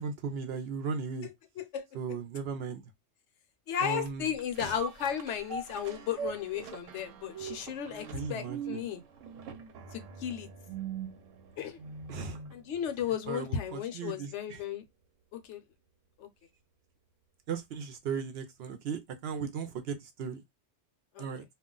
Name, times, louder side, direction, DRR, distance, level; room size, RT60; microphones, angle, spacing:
voice 1, 0.0-1.3 1.9-2.8 3.8-4.3 4.6-4.7 8.1-8.8 12.1-12.4 13.3-14.6 17.5-20.4 21.2-21.4, right 6 dB, 65° right, 0.7 m, -37 dB
voice 2, 1.2-2.2 3.7-9.0 9.9-10.5 11.6-11.8 12.5-14.8 15.3-15.6 16.2-16.3 21.1-21.3, left 9 dB, 75° left, 0.9 m, -35 dB
sound 1, 4.0-12.6 13.0-13.1, right 6 dB, 90° right, 1.0 m, -42 dB
2.3 x 2.1 x 3.7 m
omnidirectional pair, 1.3 m